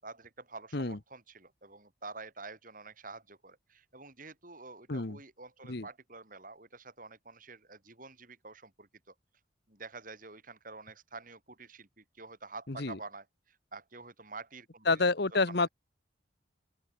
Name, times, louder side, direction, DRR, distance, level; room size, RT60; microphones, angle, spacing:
voice 1, 0.0-9.1 9.7-15.0 15.5-15.7, right 3 dB, 45° right, 6.6 m, -48 dB
voice 2, 12.7-13.0 14.9-15.7, left 3 dB, 55° left, 1.2 m, -29 dB
open air
head